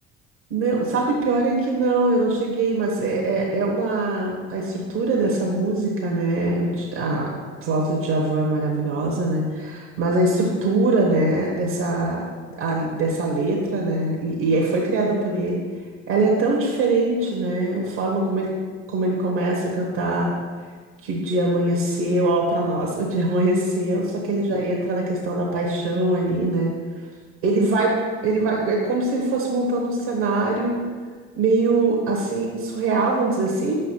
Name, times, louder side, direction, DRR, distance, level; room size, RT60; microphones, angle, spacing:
voice 1, 0.5-7.3 7.6-12.2 12.6-15.6 16.1-18.5 18.9-20.3 21.0-26.7 27.4-28.0 28.2-30.8 31.4-33.8, right 2 dB, 65° right, -2 dB, 1.4 m, -22 dB
6.0 x 4.2 x 5.6 m, 1.5 s
figure-of-eight pair, 55°, 37 cm